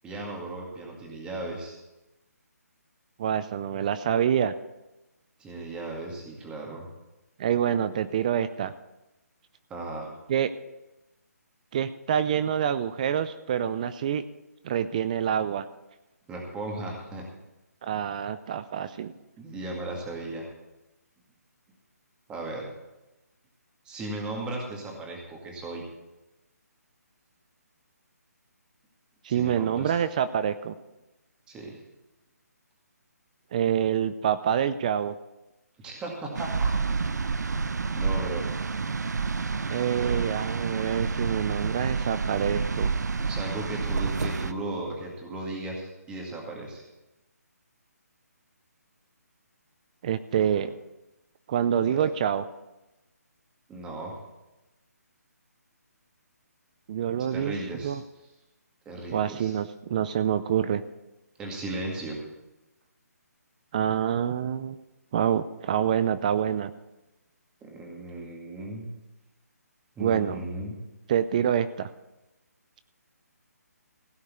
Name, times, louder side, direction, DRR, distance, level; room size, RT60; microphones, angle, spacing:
voice 1, 0.0-1.8 5.4-6.9 9.7-10.1 16.3-17.2 19.4-20.5 22.3-22.7 23.9-25.8 29.3-29.9 31.5-31.8 35.8-36.7 37.9-38.4 40.0-40.2 43.2-46.8 50.4-50.6 51.9-52.0 53.7-54.2 57.3-57.9 58.9-59.5 61.4-62.2 67.6-68.9 70.0-70.8, right 2 dB, 10° right, -1 dB, 2.1 m, -36 dB
voice 2, 3.2-4.5 7.4-8.7 10.3-10.5 11.7-14.3 14.6-15.7 17.8-19.1 29.2-30.7 33.5-35.1 39.7-42.9 50.0-50.7 51.5-52.4 56.9-57.5 57.8-58.0 59.1-60.8 63.7-64.8 65.1-66.7 70.0-70.4 71.1-71.9, right 9 dB, 25° right, 13 dB, 0.4 m, -26 dB
sound 1, 36.3-44.5, right 4 dB, 80° right, 0.7 m, -29 dB
16.0 x 5.4 x 8.3 m, 0.99 s
hypercardioid pair, 160°, 9 cm